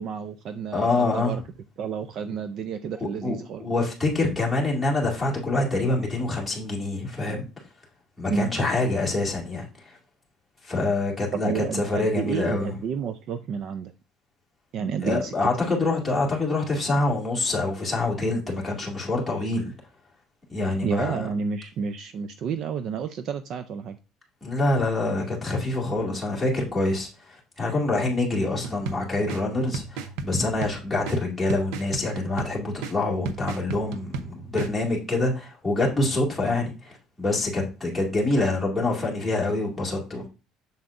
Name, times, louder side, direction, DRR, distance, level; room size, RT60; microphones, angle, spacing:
voice 1, 0.0-1.4 1.8-3.6 8.3-8.5 11.3-13.9 14.7-15.3 20.8-24.0, right 6 dB, 40° right, 0.4 m, -30 dB
voice 2, 0.7-1.4 2.3-2.4 3.0-7.4 8.2-10.0 10.6-12.8 15.0-19.7 20.5-21.3 24.4-40.3, left 2 dB, 5° left, 2.2 m, -26 dB
sound 1, 28.6-34.7, right 4 dB, 80° right, 0.7 m, -36 dB
7.5 x 7.0 x 2.6 m
cardioid pair, 170°, 0 cm